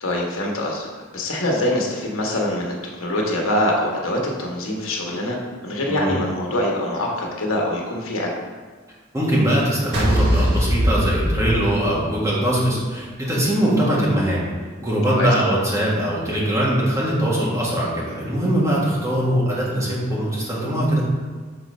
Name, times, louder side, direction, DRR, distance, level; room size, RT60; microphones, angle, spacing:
voice 1, 0.0-8.3 15.2-15.3, left 1 dB, 90° left, -1 dB, 1.3 m, -24 dB
voice 2, 9.1-14.4 14.8-21.0, right 1 dB, 15° right, -6 dB, 1.7 m, -21 dB
sound 1, 9.9-12.3, equal, 55° right, 1.7 m, -20 dB
6.4 x 4.2 x 5.3 m, 1.4 s
head